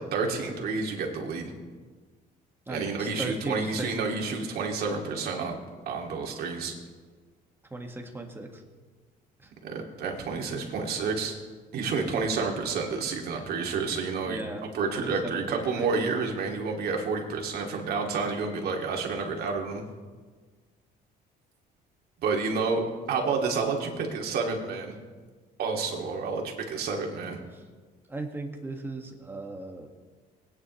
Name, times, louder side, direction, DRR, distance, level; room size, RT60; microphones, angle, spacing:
voice 1, 0.1-1.5 2.7-5.6 5.9-6.7 9.6-11.3 11.7-14.4 14.7-19.8 22.2-24.9 25.6-27.4, right 4 dB, 65° right, 0 dB, 2.5 m, -29 dB
voice 2, 2.7-4.3 7.7-8.6 9.4-9.5 14.2-14.7 14.9-15.9 27.5-27.6 28.1-29.9, right 2 dB, 15° right, 2 dB, 1.7 m, -37 dB
20.0 x 9.8 x 3.2 m, 1.4 s
cardioid pair, 110°, 17 cm